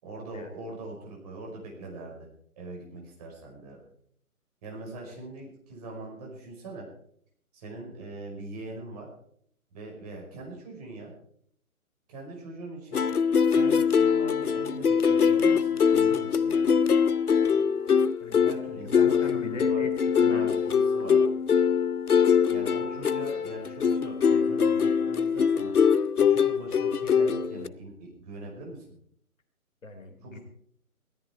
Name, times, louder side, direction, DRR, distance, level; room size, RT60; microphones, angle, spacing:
voice 1, 0.0-2.3 2.6-3.8 4.6-6.9 7.5-9.1 9.7-11.1 12.1-13.0 13.5-16.7 18.4-19.9 20.3-21.3 22.5-25.7 26.2-28.8 30.2-30.4, right 2 dB, 25° right, -1 dB, 5.2 m, -42 dB
sound 1, 12.9-27.7, left 6 dB, 80° left, 0.8 m, -23 dB
voice 2, 18.8-20.5 21.0-21.1 29.8-30.4, left 3 dB, 60° left, 6 dB, 3.2 m, -40 dB
17.0 x 14.0 x 4.5 m, 0.65 s
figure-of-eight pair, 145°, 44 cm